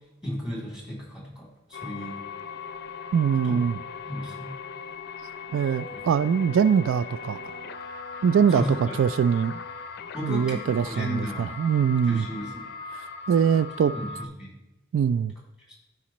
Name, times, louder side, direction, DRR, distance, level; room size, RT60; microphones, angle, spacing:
voice 1, 0.2-2.3 3.4-3.6 4.1-4.6 5.9-6.0 8.5-9.0 10.1-11.5 12.0-12.7 13.9-14.6 15.7-15.8, left 1 dB, 5° right, -3 dB, 2.8 m, -34 dB
sound 1, 1.7-14.3, left 5 dB, 55° left, 0.5 m, -39 dB
voice 2, 3.1-3.8 5.5-7.4 8.2-9.6 10.2-12.3 12.9-13.9 14.9-15.3, right 7 dB, 75° right, 15 dB, 0.3 m, -23 dB
Brass instrument, 5.5-9.7, left 3 dB, 45° right, 1.6 m, -44 dB
13.0 x 4.9 x 3.0 m, 1.0 s
head